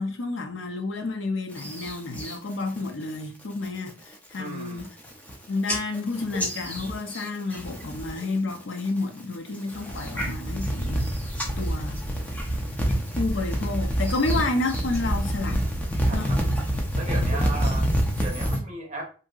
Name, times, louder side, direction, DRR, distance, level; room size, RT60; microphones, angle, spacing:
voice 1, 0.0-4.9 5.5-11.1 11.6-12.0 13.2-15.7 16.1-16.3, left 3 dB, 70° left, 0.5 m, -30 dB
sound 1, 1.5-2.4 2.8-3.1 3.5-3.9 4.3-4.4 4.7-5.3 5.7-8.2 8.5-9.0 9.5-18.6, equal, 10° left, 0.5 m, -27 dB
voice 2, 4.4-4.9 16.0-16.4 16.9-17.9 18.2-19.1, right 2 dB, 35° right, 0.7 m, -36 dB
2.7 x 2.6 x 2.3 m
head